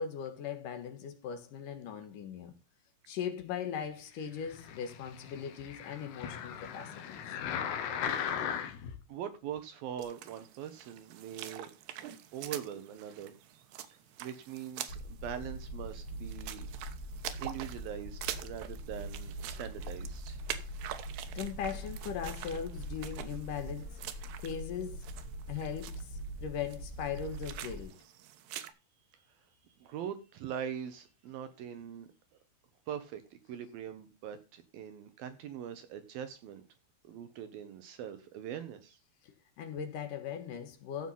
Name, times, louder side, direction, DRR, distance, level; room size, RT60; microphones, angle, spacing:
voice 1, 0.0-2.5 3.1-7.2 21.3-25.0 25.5-26.1 26.4-28.0 39.2-41.1, left 7 dB, 60° left, 2.8 m, -39 dB
sound 1, 4.4-9.0 9.6-9.7, left 8 dB, 90° left, 3.4 m, -38 dB
voice 2, 9.1-11.7 12.3-13.3 14.2-16.7 17.4-20.4 29.1-29.3 29.8-32.1 32.9-36.6 37.0-39.0, right 9 dB, 70° right, 2.7 m, -42 dB
sound 2, 10.0-28.7, right 11 dB, 85° right, 3.2 m, -46 dB
sound 3, 14.9-27.8, equal, 40° left, 2.2 m, -43 dB
15.0 x 5.8 x 5.7 m
omnidirectional pair, 4.6 m